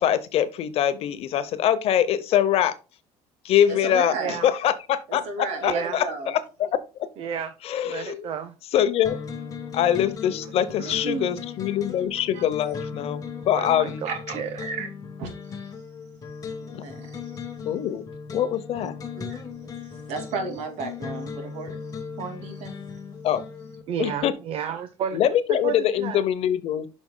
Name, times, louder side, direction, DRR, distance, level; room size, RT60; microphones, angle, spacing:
voice 1, 0.0-2.7 3.4-6.7 7.6-8.3 8.7-9.2 9.7-14.1 16.7-16.8 17.6-18.0 18.3-18.9 23.2-23.4 24.0-24.3 25.1-26.9, left 10 dB, 55° left, 0.8 m, -24 dB
voice 2, 3.7-4.3 5.1-6.3 10.3-10.7 12.3-12.5 14.0-14.9 15.2-15.3 16.6-17.4 18.8-18.9 19.1-21.8 22.2-22.8, right 4 dB, 70° right, 2.4 m, -34 dB
voice 3, 5.6-6.0 7.2-7.5 7.8-8.5 10.8-11.4 13.5-13.9 14.3-14.6 23.9-25.2 25.6-26.2, right 7 dB, 50° right, 0.7 m, -31 dB
sound 1, 9.0-23.8, left 5 dB, 30° left, 1.3 m, -37 dB
10.0 x 6.1 x 2.2 m
cardioid pair, 140°, 12 cm